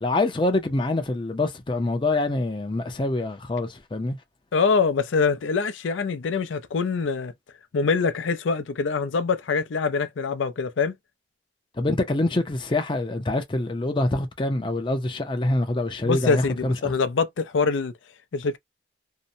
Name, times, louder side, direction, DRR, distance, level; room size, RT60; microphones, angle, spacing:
voice 1, 0.0-4.2 11.8-16.9, left 2 dB, 25° left, 0.5 m, -25 dB
voice 2, 4.5-7.3 7.7-10.9 16.0-17.9 18.3-18.6, left 4 dB, 90° left, 0.5 m, -24 dB
2.7 x 2.1 x 2.6 m
head